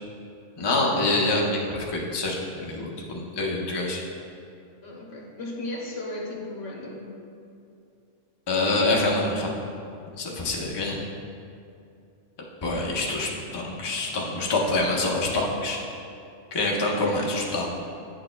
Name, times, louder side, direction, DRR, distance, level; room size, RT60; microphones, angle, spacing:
voice 1, 0.6-4.0 8.5-9.6 10.2-11.0 12.6-15.8 16.5-17.7, left 2 dB, 25° left, -2 dB, 0.6 m, -26 dB
voice 2, 4.8-7.1 10.2-10.7 12.6-13.2 16.8-17.3, left 2 dB, 75° left, -1 dB, 1.3 m, -36 dB
9.4 x 6.3 x 2.2 m, 2.5 s
omnidirectional pair, 1.3 m